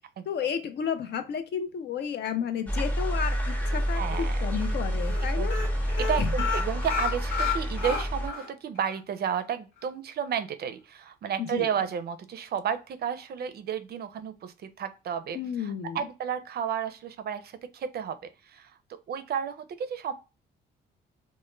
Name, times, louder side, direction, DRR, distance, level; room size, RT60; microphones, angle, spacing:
voice 1, 0.3-5.6 6.2-6.3 11.4-11.7 15.3-16.1, left 7 dB, 60° left, 9 dB, 0.5 m, -32 dB
sound 1, 2.7-8.3, equal, 10° left, 0.6 m, -28 dB
sound 2, 3.6-4.2 4.6-4.7 5.0-5.2 5.5-8.5 8.8-8.9 9.3-9.4, left 6 dB, 80° left, 1.0 m, -31 dB
voice 2, 3.9-4.4 5.4-5.5 6.0-15.4 15.6-18.2 18.5-18.7 19.1-20.1, right 8 dB, 55° right, 10 dB, 0.4 m, -32 dB
2.1 x 2.1 x 3.0 m, 0.30 s
cardioid pair, 90°, 20 cm